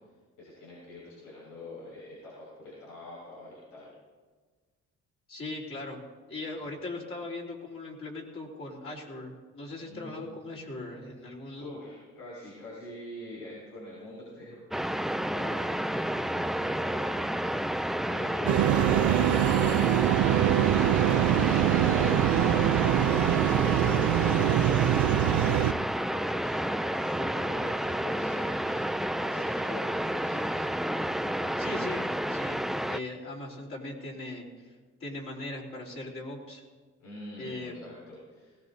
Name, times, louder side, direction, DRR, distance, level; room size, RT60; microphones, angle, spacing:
voice 1, 0.4-3.9 6.8-6.9 9.8-10.5 11.6-24.3 24.7-28.9 29.2-30.7 37.0-38.6, left 1 dB, 90° left, -8 dB, 5.7 m, -46 dB
voice 2, 5.3-6.0 6.3-11.7 31.6-32.0 32.3-32.6 32.9-34.7 35.0-36.6 37.4-37.8, left 2 dB, 45° left, -3 dB, 3.7 m, -39 dB
sound 1, 14.7-33.0, equal, ahead, 0.3 m, -30 dB
sound 2, 18.5-25.7, right 13 dB, 75° right, 0.6 m, -24 dB
20.0 x 17.5 x 2.7 m, 1.4 s
cardioid pair, 90°, 30 cm